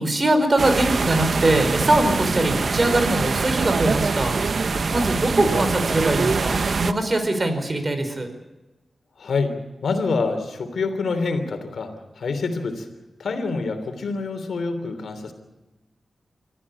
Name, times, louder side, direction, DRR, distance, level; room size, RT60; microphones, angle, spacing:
voice 1, 0.0-4.3 4.6-8.3, right 1 dB, 40° right, 8 dB, 4.9 m, -22 dB
sound 1, 0.6-6.9, right 4 dB, 65° right, 1.0 m, -23 dB
voice 2, 9.2-9.6 9.8-12.9 13.2-15.3, left 4 dB, 85° left, 8 dB, 3.2 m, -26 dB
24.5 x 14.5 x 8.6 m, 1.1 s
cardioid pair, 55°, 0 cm